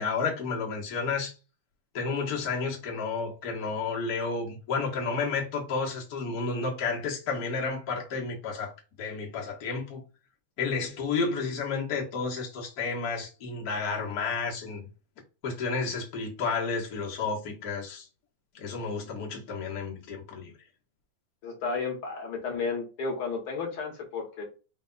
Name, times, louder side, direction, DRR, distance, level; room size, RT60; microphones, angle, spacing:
voice 1, 0.0-1.3 1.9-10.0 10.6-14.9 15.4-18.1 18.5-20.5, left 4 dB, 85° left, 0.8 m, -31 dB
voice 2, 21.4-24.4, left 4 dB, 60° left, 1.5 m, -32 dB
5.1 x 2.3 x 3.8 m
omnidirectional pair, 3.8 m